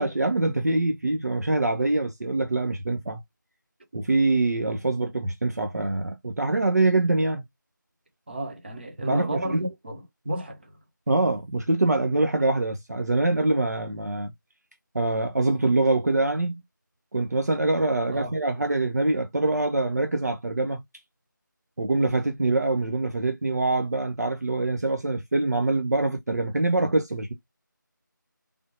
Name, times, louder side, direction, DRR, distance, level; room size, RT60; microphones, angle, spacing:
voice 1, 0.0-3.2 3.9-7.4 9.1-9.6 11.1-14.3 14.9-16.6 17.1-20.8 21.8-27.3, right 2 dB, 55° right, 0.6 m, -24 dB
voice 2, 8.3-10.8 18.1-18.3, right 1 dB, 30° right, 1.1 m, -31 dB
3.4 x 2.5 x 2.8 m
figure-of-eight pair, 165°, 11 cm